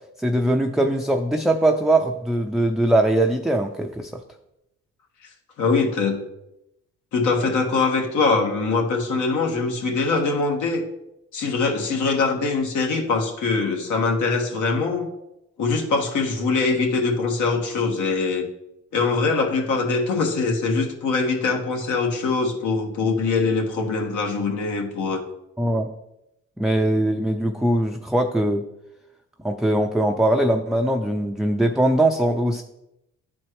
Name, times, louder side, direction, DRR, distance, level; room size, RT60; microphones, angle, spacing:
voice 1, 0.2-4.2 25.6-25.9 26.6-28.7 29.4-32.6, right 1 dB, ahead, 3 dB, 0.4 m, -21 dB
voice 2, 5.6-6.2 7.1-10.8 11.3-15.1 15.6-18.5 18.9-25.2, left 4 dB, 75° left, 2 dB, 1.4 m, -23 dB
11.0 x 4.3 x 3.1 m, 0.86 s
cardioid pair, 90°, 30 cm